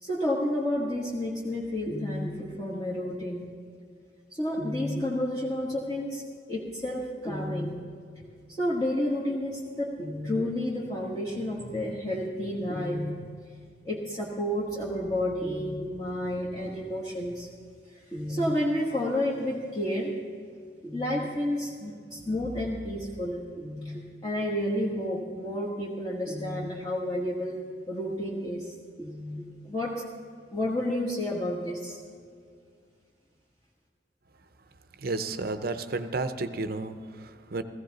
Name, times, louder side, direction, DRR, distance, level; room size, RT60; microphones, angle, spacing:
voice 1, 0.0-3.5 4.3-6.2 6.5-7.7 8.1-8.2 8.5-13.2 13.8-17.5 17.9-20.1 20.8-27.6 27.9-29.9 30.5-32.0, left 1 dB, 20° left, -6 dB, 1.4 m, -30 dB
voice 2, 35.0-37.6, right 3 dB, 55° right, 10 dB, 0.7 m, -32 dB
16.0 x 15.5 x 4.0 m, 2.2 s
head